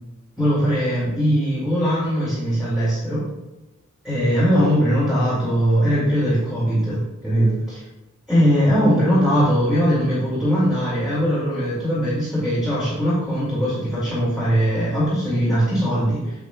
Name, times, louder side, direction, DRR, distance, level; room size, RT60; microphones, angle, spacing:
voice 1, 0.4-3.2 4.0-7.8 8.3-16.3, equal, ahead, -10 dB, 2.2 m, -20 dB
8.3 x 7.3 x 2.3 m, 1.0 s
head